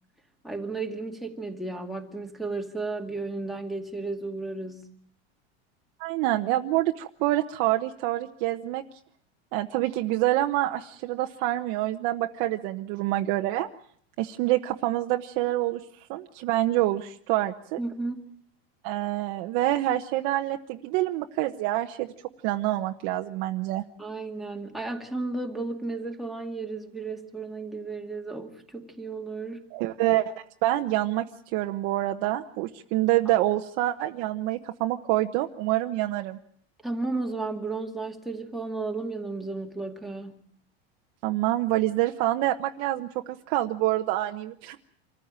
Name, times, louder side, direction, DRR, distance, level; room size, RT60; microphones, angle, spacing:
voice 1, 0.4-4.9 17.8-18.2 24.0-29.6 36.8-40.4, right 3 dB, ahead, 2 dB, 2.3 m, -33 dB
voice 2, 6.0-8.8 9.5-13.7 14.2-17.8 18.8-22.1 22.4-23.8 29.7-30.3 30.6-31.3 31.5-36.4 41.2-44.8, right 15 dB, 55° right, 5 dB, 1.1 m, -26 dB
26.0 x 14.5 x 8.9 m, 0.63 s
supercardioid pair, 150°, 30 cm